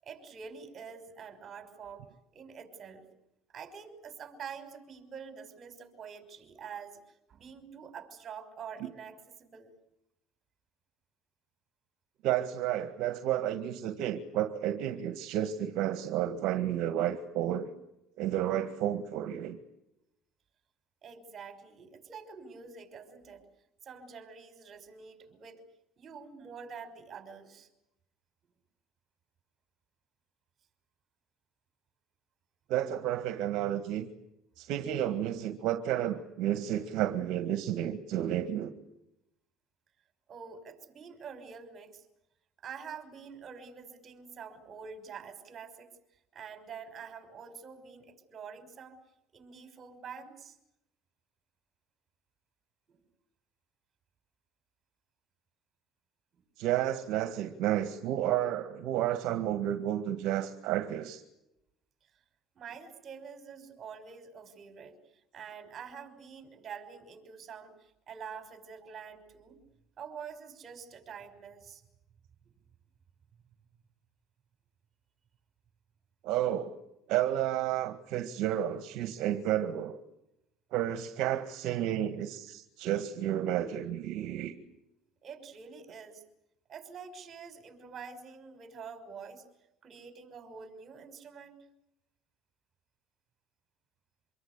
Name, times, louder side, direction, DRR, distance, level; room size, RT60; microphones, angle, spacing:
voice 1, 0.0-2.1 2.3-3.1 3.5-7.0 7.3-9.8 21.0-23.4 23.8-25.6 26.0-27.7 40.3-42.1 42.6-45.9 46.3-49.0 49.3-50.6 52.9-53.0 56.3-56.4 62.5-65.0 65.3-69.6 70.0-71.8 85.2-86.2 86.7-89.4 89.8-91.6, right 6 dB, 40° right, 8 dB, 5.8 m, -46 dB
voice 2, 12.2-17.7 18.2-19.6 32.7-34.1 34.6-38.7 56.6-61.2 76.2-76.8 77.1-80.0 80.7-84.5, right 11 dB, 70° right, 9 dB, 1.8 m, -31 dB
25.5 x 23.0 x 8.3 m, 0.85 s
supercardioid pair, 95°, 0 cm